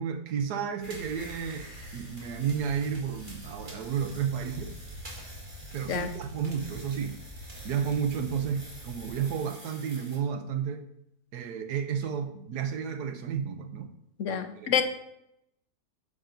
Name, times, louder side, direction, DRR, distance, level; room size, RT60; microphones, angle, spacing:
voice 1, 0.0-4.8 5.7-7.2 7.6-10.8 11.3-13.9 14.3-14.8, right 7 dB, 70° right, 1.4 m, -32 dB
sound 1, 0.8-10.2, equal, 30° right, 2.0 m, -44 dB
voice 2, 14.2-14.8, left 8 dB, 60° left, 0.9 m, -27 dB
8.8 x 6.8 x 3.9 m
omnidirectional pair, 1.8 m